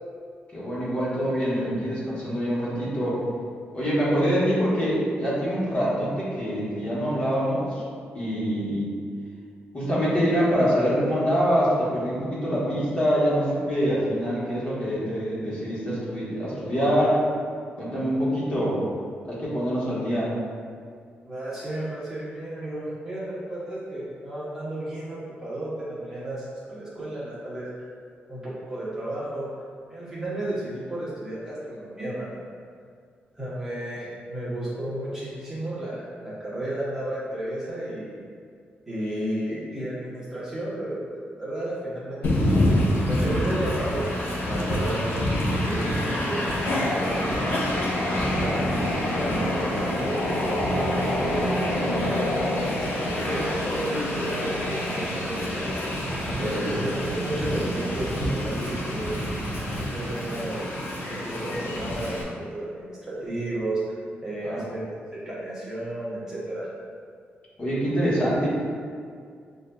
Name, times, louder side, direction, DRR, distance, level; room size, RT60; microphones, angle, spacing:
voice 1, 0.5-3.2 3.7-7.9 8.1-8.9 9.7-17.2 17.8-18.8 19.2-20.3 48.3-48.6 56.3-56.7 64.4-64.7 67.6-68.5, equal, 35° left, -9 dB, 1.2 m, -25 dB
voice 2, 21.2-27.8 28.3-29.5 29.9-32.3 33.3-38.1 38.9-42.7 43.0-45.1 45.5-47.5 48.1-48.7 49.1-50.6 51.2-56.1 56.7-59.2 59.8-60.6 61.1-64.0 64.2-64.8 65.1-66.7, right 1 dB, 15° right, -9 dB, 0.9 m, -33 dB
Train, 42.2-62.2, left 1 dB, 75° left, 0.7 m, -26 dB
6.3 x 2.6 x 2.2 m, 2.2 s
wide cardioid pair, 150°, 4 cm